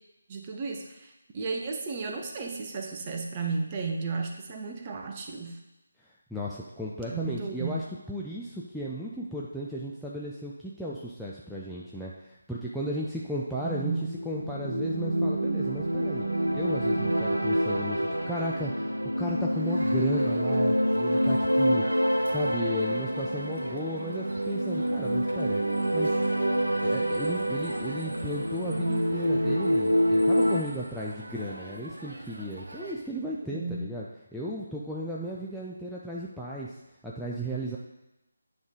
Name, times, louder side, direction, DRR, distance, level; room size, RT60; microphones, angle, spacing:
voice 1, 0.3-5.6 7.1-7.8 13.6-14.1 33.4-33.8 35.2-35.3, right 4 dB, 25° right, 2 dB, 0.8 m, -34 dB
voice 2, 6.3-13.9 14.2-16.3 16.5-25.6 25.9-26.2 26.8-34.1 34.3-36.8 37.0-37.8, equal, ahead, -8 dB, 0.4 m, -35 dB
sound 1, 13.8-30.6, equal, 85° right, 0.9 m, -27 dB
Crowd, 19.5-32.9, right 1 dB, 55° right, 1.1 m, -45 dB
9.3 x 3.2 x 5.2 m, 0.98 s
figure-of-eight pair, 155°, 0 cm